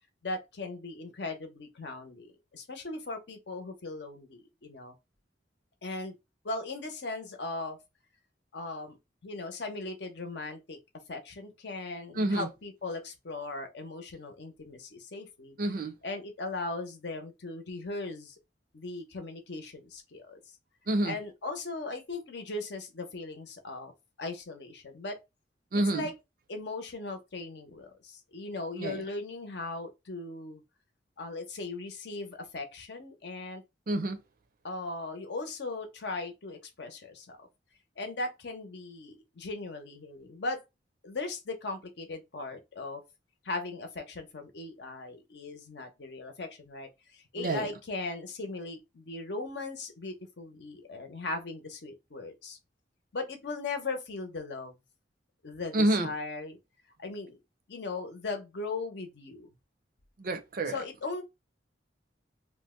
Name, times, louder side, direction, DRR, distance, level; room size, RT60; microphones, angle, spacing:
voice 1, 0.2-4.9 5.8-6.2 6.4-7.8 8.5-9.0 9.2-10.8 11.1-15.6 16.0-18.3 18.7-20.4 21.0-23.9 24.2-25.2 25.9-26.1 26.5-30.6 31.2-33.6 34.6-37.5 38.0-40.6 41.0-43.0 43.4-52.6 53.1-54.7 55.4-56.6 57.0-57.4 57.7-59.5 60.7-61.2, left 3 dB, 65° left, 0.7 m, -38 dB
voice 2, 12.2-12.5 15.6-15.9 20.9-21.1 25.7-26.0 28.8-29.0 33.9-34.2 47.4-47.7 55.7-56.1 60.2-60.7, right 1 dB, 50° right, 0.5 m, -28 dB
2.5 x 2.1 x 3.6 m
head